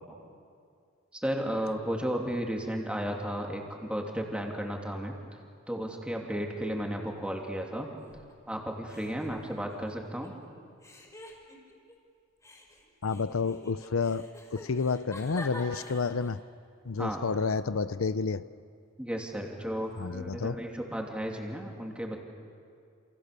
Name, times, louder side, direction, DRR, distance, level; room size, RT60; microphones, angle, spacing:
voice 1, 1.1-5.2 5.7-7.9 8.5-10.3 17.0-17.2 19.0-22.2, equal, 5° right, 1 dB, 3.0 m, -34 dB
sound 1, 8.0-8.5 8.9-10.3 10.8-11.9 12.4-16.4, left 1 dB, 15° left, 5.1 m, -47 dB
voice 2, 13.0-16.4 16.8-18.5 20.0-20.6, left 4 dB, 75° left, 14 dB, 0.6 m, -30 dB
28.5 x 28.5 x 6.9 m, 2.3 s
head